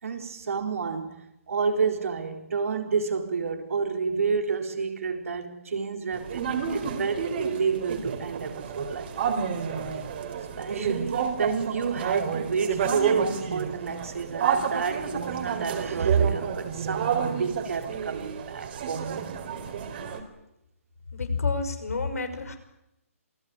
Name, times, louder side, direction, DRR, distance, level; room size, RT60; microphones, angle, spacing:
voice 1, 0.0-9.3 10.6-19.4, right 5 dB, 70° right, 4.3 m, -29 dB
sound 1, 6.1-20.2, right 7 dB, 40° right, 4.1 m, -30 dB
voice 2, 21.1-22.6, left 4 dB, 85° left, 5.9 m, -29 dB
27.5 x 18.5 x 9.7 m
hypercardioid pair, 160°, 8 cm